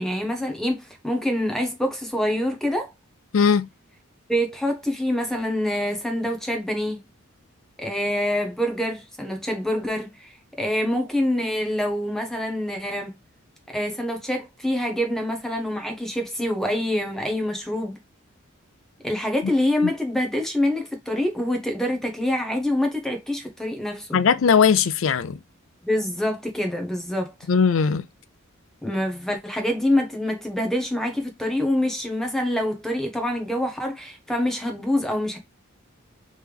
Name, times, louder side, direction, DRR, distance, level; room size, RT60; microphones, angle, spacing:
voice 1, 0.0-2.9 4.3-7.0 7.8-13.2 13.7-18.0 19.0-24.2 25.8-27.3 28.8-35.4, left 1 dB, ahead, 0.8 m, -26 dB
voice 2, 3.3-3.7 19.8-19.9 24.1-25.4 27.5-28.0, left 6 dB, 65° left, 0.4 m, -19 dB
3.3 x 3.3 x 3.4 m
head